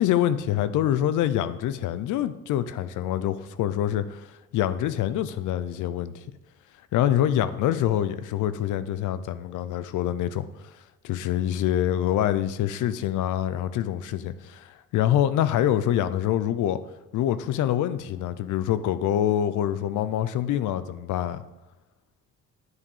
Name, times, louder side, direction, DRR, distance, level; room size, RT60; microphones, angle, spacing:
voice 1, 0.0-4.3 4.5-6.2 6.9-10.5 11.0-16.8 17.1-21.4, left 11 dB, 85° left, 0.6 m, -25 dB
9.5 x 5.0 x 5.4 m
cardioid pair, 90°, 30 cm